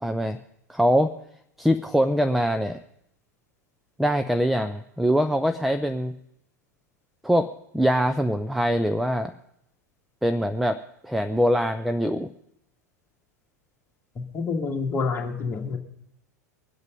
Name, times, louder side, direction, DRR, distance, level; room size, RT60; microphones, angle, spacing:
voice 1, 0.0-0.4 0.7-1.1 1.6-2.8 4.0-6.1 7.2-9.3 10.2-12.3, equal, ahead, 8 dB, 0.6 m, -23 dB
voice 2, 14.2-15.8, left 4 dB, 20° left, 2 dB, 2.2 m, -28 dB
22.5 x 8.1 x 5.3 m, 0.74 s
figure-of-eight pair, 85°, 9 cm